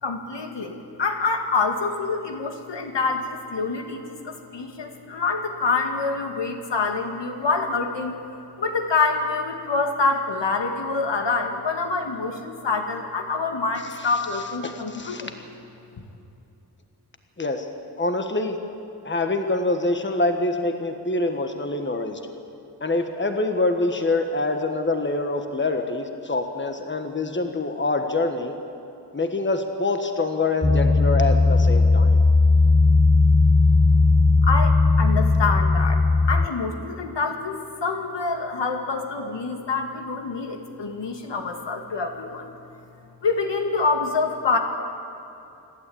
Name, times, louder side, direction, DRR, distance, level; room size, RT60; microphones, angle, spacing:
voice 1, 0.0-8.1 8.6-15.3 34.4-42.5 43.2-44.6, left 4 dB, 85° left, 4 dB, 2.1 m, -26 dB
voice 2, 14.6-15.2 17.4-17.6 18.0-18.5 19.0-22.2 22.8-28.5 29.1-32.2, left 2 dB, 25° left, 6 dB, 1.5 m, -25 dB
sound 1, 30.6-36.5, left 3 dB, 10° left, 0.4 m, -17 dB
27.5 x 12.0 x 8.7 m, 2.8 s
wide cardioid pair, 115°, 42 cm